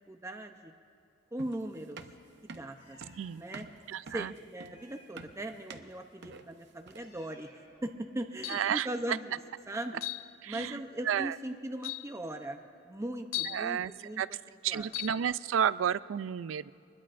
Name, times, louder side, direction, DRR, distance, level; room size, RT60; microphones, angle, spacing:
voice 1, 0.1-0.7 1.3-2.0 2.4-3.0 3.4-3.6 4.1-7.5 7.8-9.4 9.7-10.0 10.5-12.6 12.8-14.2 14.7-14.9, right 1 dB, 15° right, 4 dB, 0.7 m, -39 dB
sound 1, 1.4-7.2, right 4 dB, 60° right, 0.8 m, -49 dB
Meow, 2.8-3.4 4.6-5.6 6.8-7.9, left 2 dB, 60° left, 3.6 m, -60 dB
voice 2, 3.9-4.3 8.5-8.9 10.4-11.4 13.4-13.9 14.2-14.3 14.6-16.7, right 8 dB, 80° right, 17 dB, 0.4 m, -31 dB
sound 2, 8.4-8.8 10.0-10.3 11.2-11.3 11.8-12.1 13.3-13.7 14.9-15.2, left 17 dB, 85° left, 0.4 m, -37 dB
25.0 x 20.5 x 2.5 m, 2.3 s
head